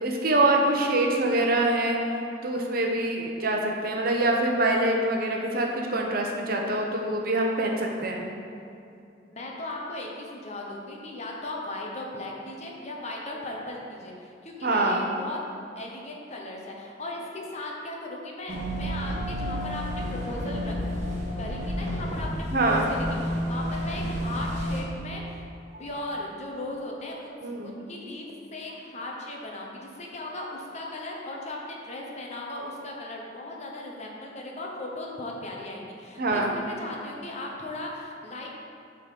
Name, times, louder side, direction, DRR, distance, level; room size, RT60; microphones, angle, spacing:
voice 1, 0.0-2.0 2.4-8.3 14.6-15.1 22.5-22.8 27.4-27.7 36.2-36.5, right 2 dB, 55° right, 1 dB, 0.8 m, -25 dB
voice 2, 9.3-15.4 15.8-20.7 21.4-25.5 25.8-28.3 28.5-38.5, left 1 dB, 40° left, -1 dB, 0.9 m, -37 dB
sound 1, 18.5-24.8, equal, 40° right, 1.4 m, -31 dB
7.8 x 3.8 x 4.9 m, 2.6 s
head